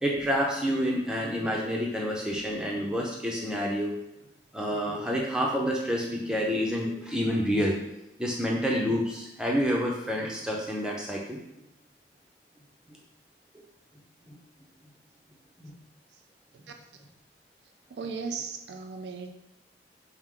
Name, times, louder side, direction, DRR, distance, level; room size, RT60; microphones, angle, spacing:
voice 1, 0.0-3.9 4.5-7.8 8.2-11.4 12.9-13.0 14.3-14.4 15.6-15.7, equal, 5° right, -2 dB, 0.5 m, -28 dB
voice 2, 17.9-19.3, right 5 dB, 80° right, 5 dB, 0.4 m, -36 dB
4.5 x 2.1 x 3.7 m, 0.89 s
head